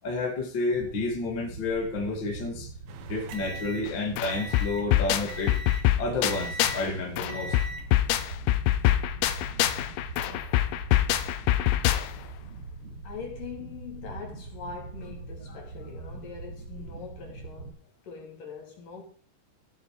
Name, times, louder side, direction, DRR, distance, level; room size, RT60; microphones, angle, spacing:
voice 1, 0.0-2.7 3.0-5.6 6.0-7.6 15.5-15.6, left 2 dB, 35° left, 2.1 m, -30 dB
sound 1, 0.7-17.7, right 4 dB, 35° right, 3.2 m, -42 dB
sound 2, 2.9-4.9 5.3-5.9 6.3-6.9 7.3-7.9 8.7-9.0, right 2 dB, 80° right, 1.6 m, -40 dB
sound 3, 3.9-4.0 4.2-6.9 7.2-12.3, left 13 dB, 85° left, 3.0 m, -25 dB
voice 2, 13.0-19.0, left 6 dB, 55° left, 4.3 m, -42 dB
16.5 x 7.0 x 4.9 m
omnidirectional pair, 4.9 m